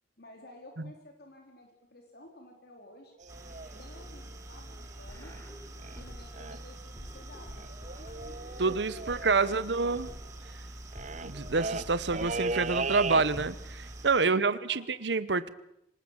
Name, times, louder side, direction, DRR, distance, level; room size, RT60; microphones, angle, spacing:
voice 1, 0.2-3.2 3.7-5.3 5.9-9.8 14.2-14.9, left 1 dB, 60° left, 2 dB, 3.8 m, -53 dB
sound 1, 3.2-5.5 5.8-6.0 6.3-6.8 7.1-7.2 7.3-13.7 14.0-14.2, right 3 dB, 40° right, 0.9 m, -37 dB
sound 2, 3.3-14.1, right 1 dB, 15° right, 4.0 m, -46 dB
sound 3, 5.1-6.5 7.0-10.5 11.0-13.1, equal, 15° left, 3.7 m, -49 dB
voice 2, 8.6-10.1 11.2-15.5, right 4 dB, 70° right, 16 dB, 0.9 m, -27 dB
26.0 x 19.5 x 7.4 m, 0.78 s
head